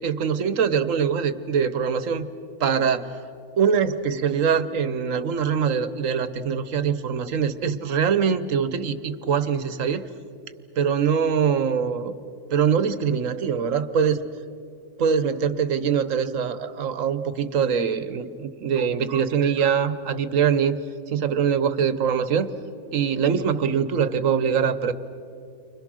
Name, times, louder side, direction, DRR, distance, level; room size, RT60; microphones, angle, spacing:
voice 1, 0.0-2.3 2.6-3.2 3.6-10.1 10.8-12.2 12.5-14.2 15.0-20.8 21.1-22.5 22.9-24.9, right 7 dB, 75° right, 12 dB, 1.4 m, -23 dB
30.0 x 25.5 x 6.4 m, 2.5 s
omnidirectional pair, 1.4 m